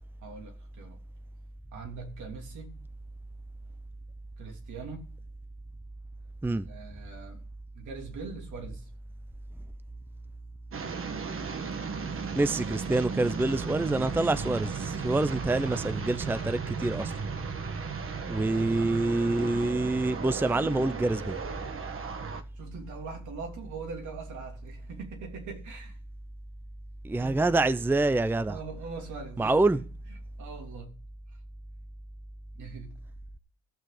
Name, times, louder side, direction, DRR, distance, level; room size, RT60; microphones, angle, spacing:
voice 1, 0.2-1.0 1.7-2.8 4.4-5.1 6.7-7.4 7.7-8.8 22.6-26.0 27.2-27.6 28.5-29.6 30.4-30.9 32.5-32.9, right 4 dB, 75° right, 3.1 m, -42 dB
sound 1, 10.7-22.4, right 5 dB, 45° right, 1.5 m, -35 dB
voice 2, 12.3-17.1 18.3-21.4 27.0-28.6 29.4-29.8, right 2 dB, 5° right, 0.5 m, -26 dB
14.5 x 6.4 x 5.0 m
cardioid pair, 90°, 30 cm